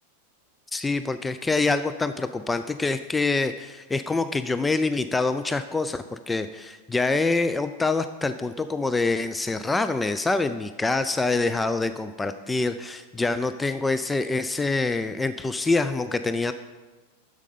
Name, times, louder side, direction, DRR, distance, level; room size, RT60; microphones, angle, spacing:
voice 1, 0.7-16.5, left 3 dB, 10° left, 11 dB, 0.3 m, -25 dB
8.2 x 6.4 x 5.4 m, 1.2 s
figure-of-eight pair, 90°, 0 cm